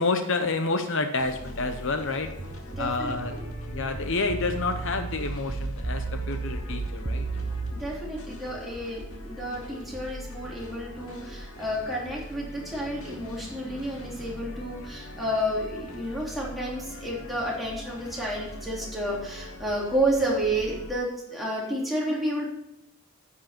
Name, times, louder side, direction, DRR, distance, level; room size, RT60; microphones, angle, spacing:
voice 1, 0.0-2.3 2.8-3.4 3.7-7.3 15.7-15.8 20.3-20.4, left 3 dB, 60° left, 7 dB, 0.8 m, -29 dB
sound 1, 1.2-20.9, equal, 80° left, 2.0 m, -42 dB
sound 2, 2.4-7.7, right 3 dB, 35° right, 0.7 m, -33 dB
voice 2, 2.8-3.4 7.7-22.5, right 1 dB, ahead, -5 dB, 3.3 m, -31 dB
10.0 x 8.4 x 4.4 m, 0.85 s
head